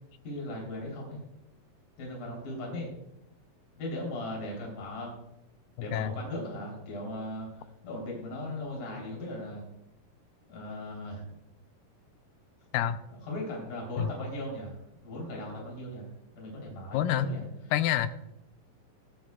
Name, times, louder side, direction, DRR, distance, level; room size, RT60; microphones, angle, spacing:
voice 1, 0.2-1.2 2.0-2.9 3.8-5.1 5.8-9.7 10.5-11.3 13.3-16.1 16.3-17.4, left 1 dB, 55° left, -2 dB, 4.7 m, -38 dB
voice 2, 5.8-6.2 12.7-13.0 14.0-14.1 16.9-17.3 17.7-18.1, left 11 dB, 85° left, 11 dB, 2.0 m, -27 dB
25.5 x 8.6 x 2.3 m, 0.84 s
omnidirectional pair, 4.4 m